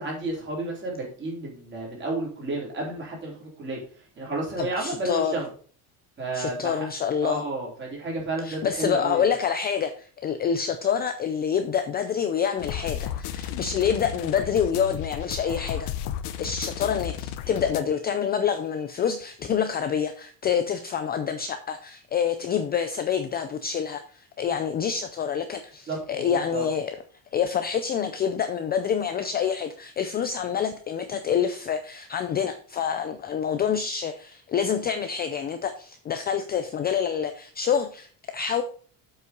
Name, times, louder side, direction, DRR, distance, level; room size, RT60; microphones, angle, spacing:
voice 1, 0.0-3.8 4.2-5.5 6.2-6.9 7.2-9.3 25.9-26.7, right 2 dB, 25° right, -2 dB, 3.8 m, -31 dB
voice 2, 4.6-5.3 6.3-7.4 8.4-15.9 16.4-26.9 27.3-38.6, left 7 dB, 25° left, 8 dB, 0.4 m, -27 dB
sound 1, 12.6-17.8, left 10 dB, 85° left, 1.0 m, -33 dB
7.8 x 5.6 x 5.2 m, 0.43 s
cardioid pair, 175°, 41 cm